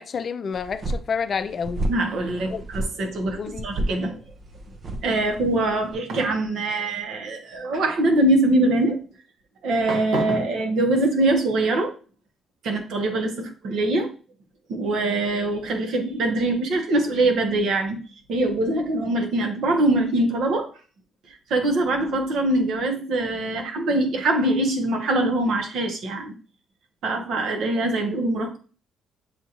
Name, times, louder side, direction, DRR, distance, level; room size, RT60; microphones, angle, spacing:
voice 1, 0.0-1.9 2.5-2.6 3.4-3.7, left 6 dB, 50° left, 0.4 m, -29 dB
sound 1, 0.5-5.9, right 1 dB, 45° right, 0.7 m, -32 dB
voice 2, 1.9-4.2 5.0-9.0 9.6-11.9 12.6-14.1 14.7-18.0 18.3-20.7 21.3-26.3 27.0-28.6, right 2 dB, 75° right, 1.2 m, -23 dB
7.0 x 2.6 x 2.9 m
cardioid pair, 90°, 0 cm